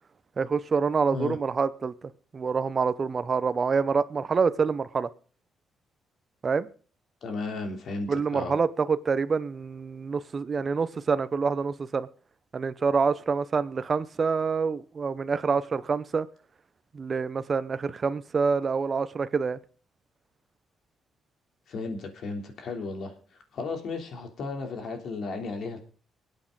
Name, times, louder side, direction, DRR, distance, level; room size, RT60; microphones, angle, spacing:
voice 1, 0.4-5.1 6.4-6.7 8.1-12.1 12.5-16.3 16.9-19.6, right 5 dB, 40° right, 0.8 m, -26 dB
voice 2, 7.2-8.6 21.7-23.1 23.5-25.8, left 3 dB, 65° left, 3.3 m, -34 dB
23.5 x 8.7 x 3.9 m
cardioid pair, 90°, 0 cm